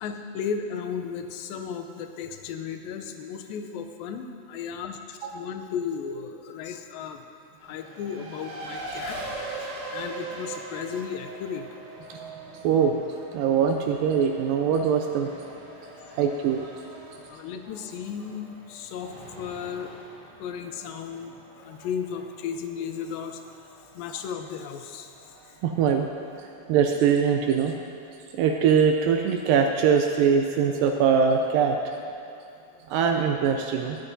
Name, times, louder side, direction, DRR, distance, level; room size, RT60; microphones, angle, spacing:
voice 1, 0.0-7.2 7.6-9.2 9.6-11.7 17.3-19.9 20.4-23.4 24.0-25.1, left 7 dB, 80° left, 6 dB, 2.4 m, -35 dB
Race car auto racing, 7.6-26.7, right 2 dB, 55° right, 2.6 m, -42 dB
voice 2, 12.6-13.0 13.3-15.3 16.2-16.6 25.6-26.1 26.7-27.7 28.3-31.8 32.9-34.0, right 7 dB, 80° right, 4 dB, 2.2 m, -22 dB
19.5 x 9.5 x 2.7 m, 2.8 s
omnidirectional pair, 4.2 m